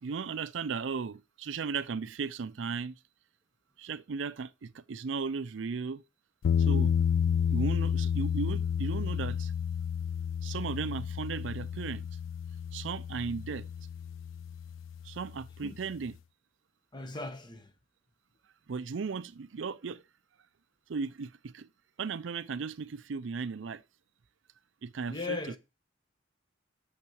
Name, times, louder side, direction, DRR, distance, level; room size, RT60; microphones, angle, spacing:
voice 1, 0.0-2.9 3.8-6.0 6.6-6.9 7.5-9.5 10.4-12.1 12.7-13.7 15.0-16.1 18.7-20.0 20.9-21.7 22.0-23.8 24.8-25.4, right 5 dB, 70° right, 0.5 m, -36 dB
sound 1, 6.4-15.4, left 7 dB, 85° left, 0.3 m, -31 dB
voice 2, 16.9-17.7 25.1-25.6, left 3 dB, 25° left, 0.9 m, -37 dB
6.6 x 5.9 x 6.1 m
head